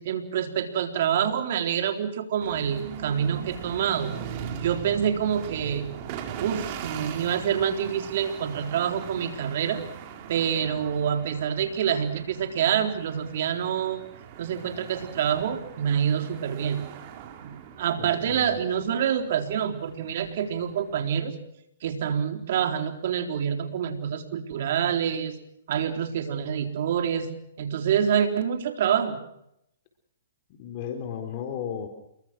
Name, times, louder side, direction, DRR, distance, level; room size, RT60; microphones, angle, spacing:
voice 1, 0.0-4.2 4.6-5.9 6.4-9.8 10.3-14.0 14.4-16.8 17.4-21.3 21.8-25.4 25.7-29.2, right 8 dB, 55° right, 6 dB, 4.0 m, -27 dB
sound 1, 2.4-21.0, right 8 dB, 40° right, 4.2 m, -41 dB
voice 2, 18.0-18.6 30.5-31.9, left 8 dB, 40° left, 5 dB, 4.0 m, -35 dB
28.5 x 23.0 x 6.3 m, 0.78 s
hypercardioid pair, 140°, 0 cm